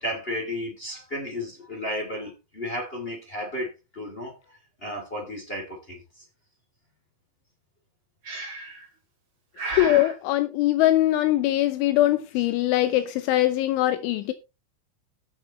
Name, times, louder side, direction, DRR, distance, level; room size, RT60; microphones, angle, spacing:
voice 1, 0.0-4.3 4.8-6.2, left 1 dB, 20° left, 1.5 m, -33 dB
Breathing, 8.2-8.9 9.6-10.2, right 2 dB, 30° right, 2.2 m, -33 dB
voice 2, 9.8-14.3, left 15 dB, 80° left, 3.1 m, -22 dB
17.5 x 7.0 x 3.1 m
omnidirectional pair, 5.6 m